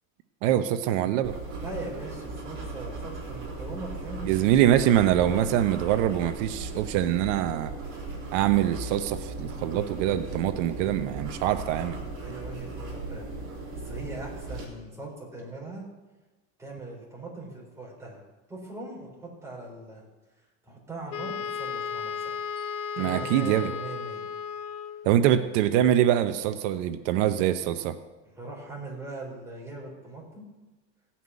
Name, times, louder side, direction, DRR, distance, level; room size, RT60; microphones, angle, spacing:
voice 1, 0.4-1.4 4.2-7.7 8.3-12.0 23.0-23.7 25.0-27.9, right 11 dB, 85° right, 9 dB, 0.9 m, -24 dB
sound 1, 1.2-14.6, right 2 dB, 35° right, 3.6 m, -37 dB
voice 2, 1.6-4.8 12.2-13.3 13.7-15.8 16.6-18.2 18.5-20.0 20.6-24.2 28.2-30.5, right 2 dB, 10° right, -4 dB, 4.0 m, -40 dB
Wind instrument woodwind instrument, 21.1-25.1, left 6 dB, 50° left, 0.8 m, -34 dB
16.0 x 5.9 x 9.5 m, 1.1 s
cardioid pair, 170°, 35 cm